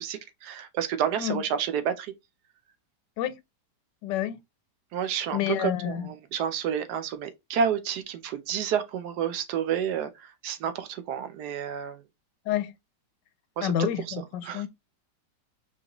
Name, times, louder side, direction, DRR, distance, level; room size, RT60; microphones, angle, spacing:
voice 1, 0.0-2.1 4.9-12.0 13.6-13.7 14.1-14.2 14.4-14.6, right 8 dB, 70° right, 1.2 m, -30 dB
voice 2, 4.0-4.4 5.3-6.0 12.5-12.7 13.6-14.7, left 11 dB, 85° left, 1.2 m, -29 dB
4.7 x 3.0 x 2.9 m
omnidirectional pair, 1.9 m